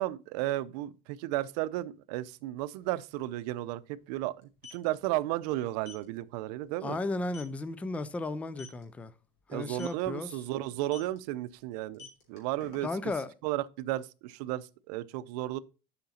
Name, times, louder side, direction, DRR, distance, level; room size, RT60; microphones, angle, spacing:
voice 1, 0.0-7.0 9.5-12.9 13.4-15.6, right 16 dB, 75° right, 0.6 m, -34 dB
sound 1, 2.8-2.9 3.1-3.3 4.4-4.8 5.8-6.0 6.5-6.7 7.0-7.1 7.3-7.6 8.5-8.8 9.7-10.0 10.9-11.2 11.8-13.1, left 5 dB, 60° left, 3.5 m, -48 dB
voice 2, 6.8-9.1 9.5-10.3 12.8-13.3, left 2 dB, 5° left, 0.3 m, -34 dB
7.7 x 5.9 x 4.2 m
cardioid pair, 160°, 20 cm